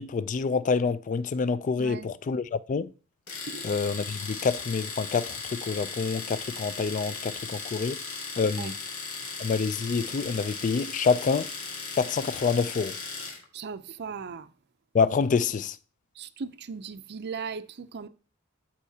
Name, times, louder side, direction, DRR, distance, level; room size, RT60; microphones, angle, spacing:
voice 1, 0.0-2.9 3.6-8.0 8.4-8.7 9.4-11.5 12.0-12.9 14.9-15.8, left 5 dB, 35° left, 0.3 m, -27 dB
voice 2, 1.8-2.1 3.5-3.7 8.6-8.7 13.5-14.5 16.2-18.1, right 5 dB, 50° right, 0.5 m, -37 dB
Domestic sounds home sounds, 3.3-13.4, left 4 dB, 90° left, 2.0 m, -37 dB
13.0 x 4.4 x 2.8 m
head